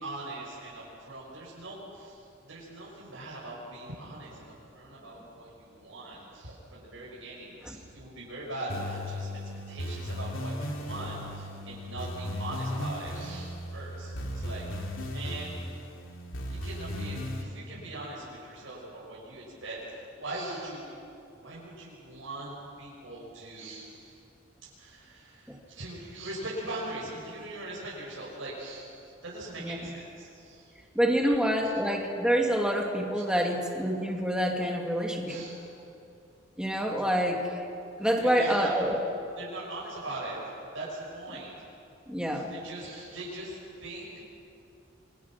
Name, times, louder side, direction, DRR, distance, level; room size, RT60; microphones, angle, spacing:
voice 1, 0.0-9.3 9.7-15.5 16.5-20.9 21.4-24.2 24.6-30.7 31.2-31.3 31.6-31.7 33.3-33.4 35.3-35.6 38.2-38.7 39.4-41.7 42.3-44.3, right 2 dB, 85° right, -6 dB, 5.9 m, -41 dB
sound 1, 8.7-17.4, left 1 dB, 90° left, 3.2 m, -36 dB
voice 2, 30.9-35.4 36.6-37.6 38.0-39.0 42.1-42.5, equal, 5° right, 0 dB, 2.5 m, -27 dB
28.5 x 24.5 x 6.1 m, 2.7 s
head